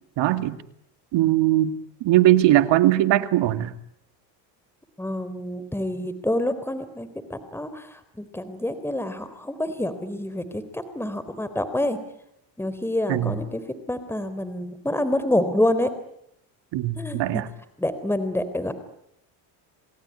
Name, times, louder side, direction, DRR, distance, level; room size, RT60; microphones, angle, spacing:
voice 1, 0.2-0.6 1.1-1.7 2.0-3.7 13.1-13.3 16.7-17.5, right 14 dB, 65° right, 10 dB, 2.4 m, -20 dB
voice 2, 5.0-12.0 12.6-13.6 13.9-15.9 17.0-17.4 17.8-18.7, left 1 dB, 5° left, 12 dB, 3.6 m, -27 dB
29.5 x 19.0 x 9.8 m, 0.77 s
supercardioid pair, 80°, 48 cm